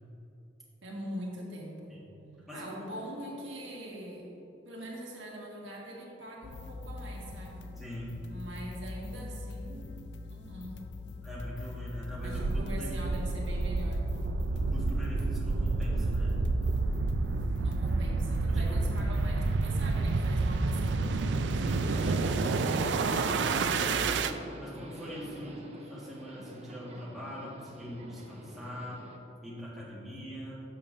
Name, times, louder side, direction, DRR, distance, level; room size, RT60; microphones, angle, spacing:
voice 1, 0.8-2.1 2.5-4.3 4.6-7.6 8.3-9.9 10.2-10.8 12.2-14.1 17.6-21.2, right 1 dB, 90° right, -2 dB, 1.5 m, -42 dB
voice 2, 2.5-2.8 7.8-8.2 11.2-13.0 14.5-16.5 18.5-18.9 21.6-22.0 23.0-23.8 24.6-29.0 29.4-30.6, equal, ahead, -8 dB, 1.4 m, -42 dB
sound 1, 6.4-24.3, left 3 dB, 65° left, 0.4 m, -43 dB
sound 2, 12.1-24.3, right 3 dB, 70° right, 0.3 m, -29 dB
Subway metro underground, 21.6-29.2, right 1 dB, 35° right, 0.7 m, -45 dB
10.5 x 6.9 x 2.5 m, 3.0 s
head